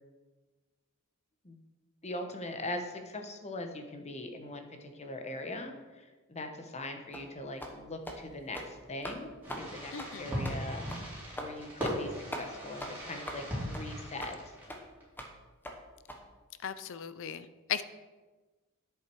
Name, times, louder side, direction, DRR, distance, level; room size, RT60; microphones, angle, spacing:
voice 1, 2.0-9.9 10.2-10.9 11.4-14.6, left 1 dB, 30° left, 5 dB, 1.1 m, -41 dB
sound 1, 7.1-7.3 7.6-7.8 8.1-8.2 8.5-8.7 9.0-9.2 9.5-9.7 10.0-10.1 10.4-10.6 10.9-11.0 11.4-11.5 11.8-12.0 12.3-12.5 12.8-12.9 13.3-13.4 13.7-13.9 14.2-14.4 14.7-14.8 15.2-15.3 15.7-15.8 16.1-16.2, equal, 10° left, 1.1 m, -41 dB
Fireworks, 9.4-15.0, equal, 10° right, 3.7 m, -39 dB
voice 2, 9.9-10.3 16.6-17.8, left 8 dB, 60° left, 13 dB, 0.6 m, -37 dB
10.5 x 8.3 x 4.7 m, 1.3 s
head